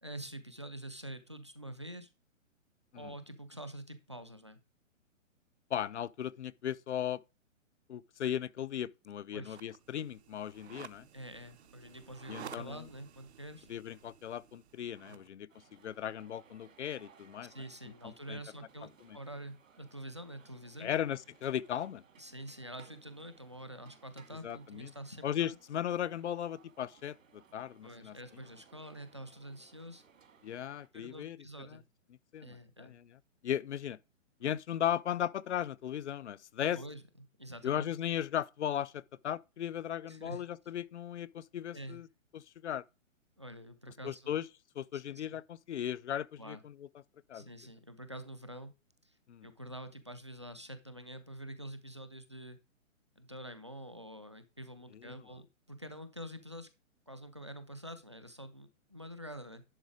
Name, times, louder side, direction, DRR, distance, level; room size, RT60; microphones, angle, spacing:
voice 1, 0.0-2.1 2.9-4.6 9.3-9.6 11.1-13.7 15.1-15.3 17.4-20.9 22.2-25.6 27.8-30.0 30.9-31.8 32.4-33.0 34.4-34.6 36.7-37.9 40.0-40.4 41.7-42.0 43.4-44.4 44.9-45.4 46.4-46.6 47.3-48.7 49.0-49.2 49.4-52.6 53.2-56.7 57.1-59.6, right 1 dB, 25° right, 0.4 m, -47 dB
voice 2, 5.7-7.2 7.9-11.0 12.3-12.8 13.7-15.5 15.8-17.5 18.0-18.4 20.8-22.0 24.4-24.9 25.2-27.2 27.5-28.1 30.4-31.4 32.3-33.0 33.4-34.0 34.4-36.8 37.6-42.1 42.3-42.8 44.0-44.4 44.8-46.7 47.3-47.4 49.3-49.5, left 10 dB, 60° left, 0.6 m, -36 dB
sound 1, 9.4-15.3, right 9 dB, 55° right, 0.7 m, -53 dB
sound 2, 15.5-30.9, right 7 dB, 70° right, 1.9 m, -63 dB
11.0 x 3.8 x 4.8 m
hypercardioid pair, 165°, 40 cm